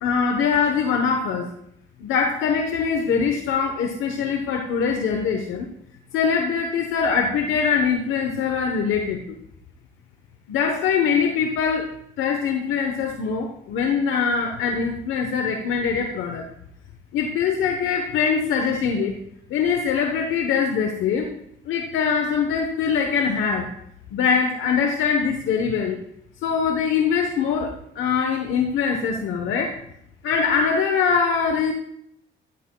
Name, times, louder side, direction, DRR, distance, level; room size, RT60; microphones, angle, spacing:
voice 1, 0.0-1.5 2.0-5.7 6.1-9.4 10.5-11.9 12.2-16.4 17.1-19.1 19.5-21.3 21.7-23.7 24.1-26.0 26.4-29.8 30.2-31.7, left 6 dB, 85° left, 3 dB, 1.0 m, -23 dB
13.0 x 12.5 x 2.3 m, 0.74 s
cardioid pair, 90°, 20 cm